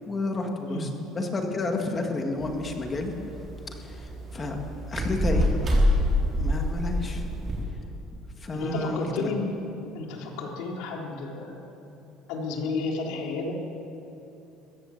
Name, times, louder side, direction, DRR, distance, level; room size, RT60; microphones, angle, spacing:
voice 1, 0.1-3.1 3.7-4.6 4.9-5.5 6.2-7.3 8.4-9.3, left 2 dB, 20° left, 3 dB, 1.9 m, -31 dB
sound 1, 2.4-7.6, equal, 20° right, 3.7 m, -26 dB
voice 2, 8.5-9.4 9.9-11.6 12.3-13.6, left 3 dB, 75° left, 0 dB, 3.6 m, -31 dB
22.5 x 15.0 x 7.8 m, 2.8 s
cardioid pair, 175°, 0 cm